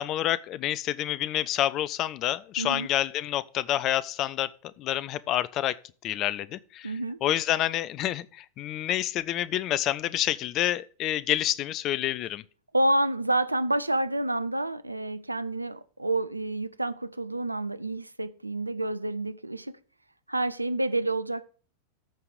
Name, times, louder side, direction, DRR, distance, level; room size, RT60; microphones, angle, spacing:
voice 1, 0.0-4.5 4.8-5.8 6.0-6.9 7.2-12.4, left 13 dB, 35° left, 0.5 m, -28 dB
voice 2, 2.6-2.9 6.8-7.2 12.7-19.8 20.3-21.5, right 2 dB, 85° right, 0.5 m, -28 dB
14.0 x 4.8 x 5.0 m
figure-of-eight pair, 90°, 0 cm